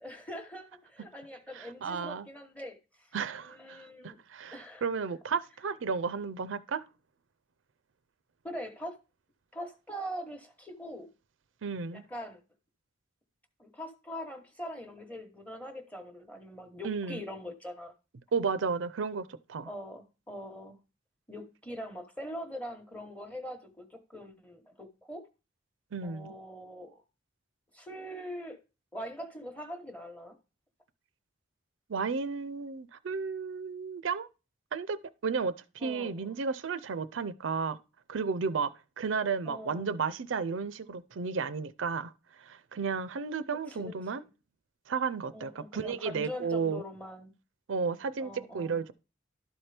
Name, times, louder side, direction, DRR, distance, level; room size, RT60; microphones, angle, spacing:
voice 1, 0.0-3.1 3.4-4.2 4.5-4.9 8.4-9.0 9.5-11.1 11.9-12.4 13.6-17.9 19.7-20.8 21.3-25.2 26.0-27.0 27.7-28.6 28.9-30.4 35.8-36.4 39.5-39.9 43.7-44.1 45.3-47.3 48.2-48.9, equal, 5° left, 1.0 m, -42 dB
voice 2, 1.5-2.3 3.1-6.8 11.6-12.0 16.8-17.2 18.3-19.7 25.9-26.3 31.9-34.3 34.7-35.0 35.2-37.8 38.1-38.7 39.0-42.1 42.4-44.2 44.9-46.8 47.7-48.9, right 5 dB, 85° right, 0.5 m, -33 dB
12.0 x 4.4 x 3.3 m
head